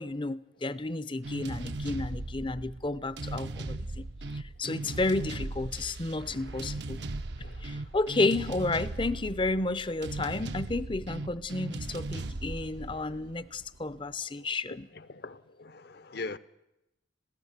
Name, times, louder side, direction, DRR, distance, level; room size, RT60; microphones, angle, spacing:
voice 1, 0.0-4.1 4.3-7.0 7.6-14.9, left 2 dB, 25° left, 0.6 m, -32 dB
sound 1, 1.2-14.0, right 2 dB, 60° right, 0.8 m, -38 dB
voice 2, 15.0-16.4, left 3 dB, 55° left, 0.8 m, -42 dB
21.5 x 16.0 x 8.2 m
head